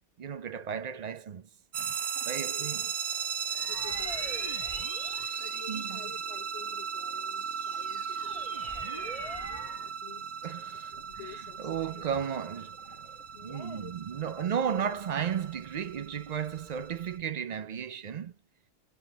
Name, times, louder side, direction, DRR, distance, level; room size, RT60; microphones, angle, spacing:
voice 1, 0.2-1.5 1.7-2.0 2.3-2.9 5.7-6.0 10.4-10.9 11.2-13.1 13.4-18.3, right 8 dB, 50° right, 0.5 m, -34 dB
sound 1, 1.7-17.2, right 7 dB, 75° right, 1.0 m, -37 dB
voice 2, 2.0-2.8 3.3-4.5 5.4-8.9 9.8-10.4 10.9-12.1 13.0-14.5, left 8 dB, 80° left, 1.6 m, -51 dB
sound 2, 3.5-6.5 7.0-9.9, right 2 dB, 35° right, 1.6 m, -43 dB
sound 3, 10.9-13.5 14.1-14.2, equal, 10° right, 1.6 m, -58 dB
4.3 x 3.7 x 2.9 m
omnidirectional pair, 1.1 m